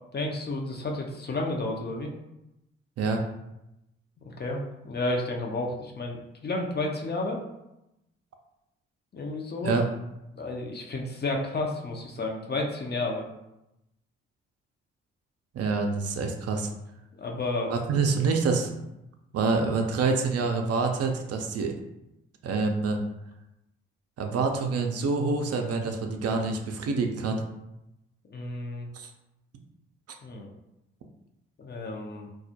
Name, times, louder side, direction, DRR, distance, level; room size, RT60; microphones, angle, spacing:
voice 1, 0.1-2.1 4.2-4.6 4.8-6.2 6.4-7.4 9.1-9.8 10.4-13.2 17.2-17.7 28.3-28.9 30.2-30.5 31.6-32.3, left 2 dB, 35° left, 1 dB, 0.6 m, -31 dB
voice 2, 15.5-16.7 17.7-18.7 19.3-21.7 22.4-23.0 24.2-27.4 28.9-29.1, right 4 dB, 55° right, 3 dB, 0.5 m, -26 dB
2.3 x 2.0 x 2.7 m, 0.90 s
hypercardioid pair, 40°, 30 cm